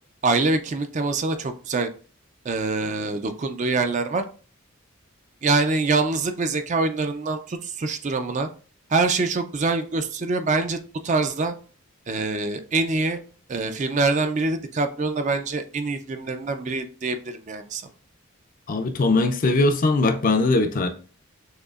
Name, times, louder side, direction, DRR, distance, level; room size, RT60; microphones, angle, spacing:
voice 1, 0.2-1.9 2.4-4.2 5.4-8.5 8.9-10.8 11.0-11.5 12.1-13.2 13.5-17.8, right 3 dB, 35° right, 0.4 m, -24 dB
voice 2, 18.7-20.9, left 2 dB, 40° left, 0.5 m, -20 dB
6.4 x 2.8 x 2.4 m
head